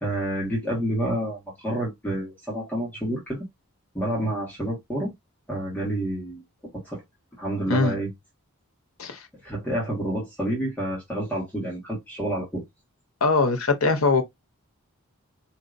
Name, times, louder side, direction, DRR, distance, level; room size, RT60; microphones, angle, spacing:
voice 1, 0.0-3.5 3.9-5.1 5.5-6.4 6.7-7.0 7.4-8.1 9.4-12.6, right 1 dB, 5° left, 1.4 m, -29 dB
voice 2, 13.2-14.2, left 3 dB, 70° left, 0.9 m, -21 dB
4.5 x 2.8 x 2.5 m
head